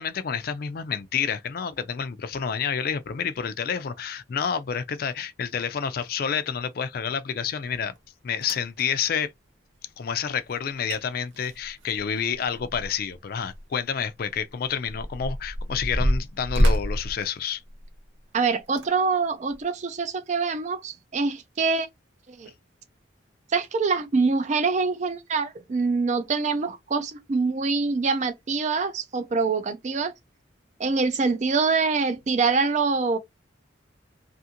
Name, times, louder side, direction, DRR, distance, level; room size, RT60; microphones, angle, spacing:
voice 1, 0.0-7.9 8.2-9.3 10.0-17.6, left 7 dB, 50° left, 0.4 m, -29 dB
sound 1, 8.4-8.8 10.6-10.7 10.9-11.0 11.3-13.1 13.5-13.6 14.3-18.1 18.7-18.9 19.5-19.6, equal, 85° right, 0.7 m, -27 dB
voice 2, 18.3-21.9 22.3-22.5 23.5-30.1 30.8-33.2, right 4 dB, 40° right, 0.4 m, -25 dB
2.5 x 2.5 x 2.8 m
head